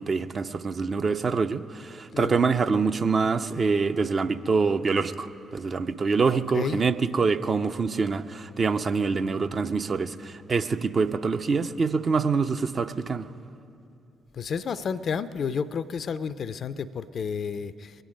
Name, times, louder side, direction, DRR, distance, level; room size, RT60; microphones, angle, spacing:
voice 1, 0.0-13.3, right 4 dB, 40° right, 9 dB, 0.5 m, -25 dB
voice 2, 6.3-6.8 14.3-17.9, left 6 dB, 50° left, 16 dB, 0.4 m, -31 dB
22.0 x 9.1 x 5.2 m, 2.7 s
figure-of-eight pair, 40°, 0 cm